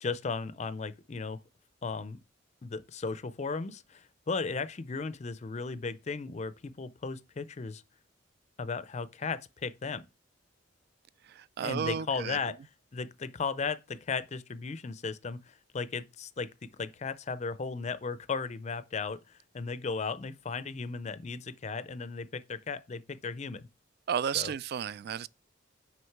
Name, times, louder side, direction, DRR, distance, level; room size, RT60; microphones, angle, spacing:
voice 1, 0.0-1.4 1.8-2.2 2.6-7.8 8.6-10.1 11.6-12.6 12.9-19.2 19.5-23.7 24.3-24.5, left 4 dB, 35° left, 0.5 m, -36 dB
voice 2, 11.3-12.4 24.1-25.3, right 8 dB, 50° right, 0.3 m, -33 dB
6.4 x 5.1 x 4.5 m
head